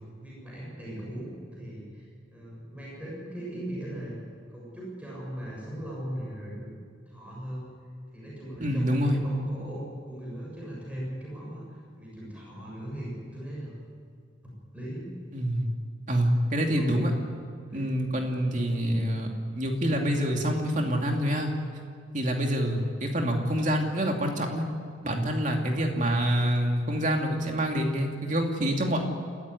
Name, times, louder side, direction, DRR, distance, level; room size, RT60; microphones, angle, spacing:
voice 1, 0.2-4.2 4.5-6.7 7.1-7.7 8.1-11.7 12.0-13.8 14.7-15.1 16.7-17.1 17.7-17.9, right 1 dB, 5° right, -5 dB, 7.1 m, -38 dB
voice 2, 8.6-9.2 15.3-15.7 16.1-17.1 17.7-19.3 19.5-21.5 22.1-24.6 25.0-29.0, equal, 40° right, 2 dB, 2.8 m, -26 dB
28.5 x 14.0 x 10.0 m, 2.1 s
head